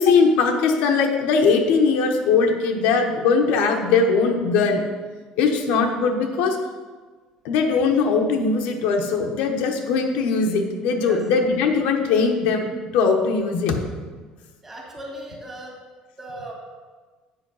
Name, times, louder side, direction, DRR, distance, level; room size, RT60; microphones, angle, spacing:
voice 1, 0.0-4.8 5.4-6.6 7.4-12.7 12.9-13.8, left 4 dB, 80° left, 3 dB, 1.0 m, -20 dB
voice 2, 14.6-15.9 16.2-16.5, right 1 dB, 15° right, -1 dB, 1.7 m, -38 dB
8.0 x 5.2 x 5.4 m, 1.4 s
cardioid pair, 155°, 2 cm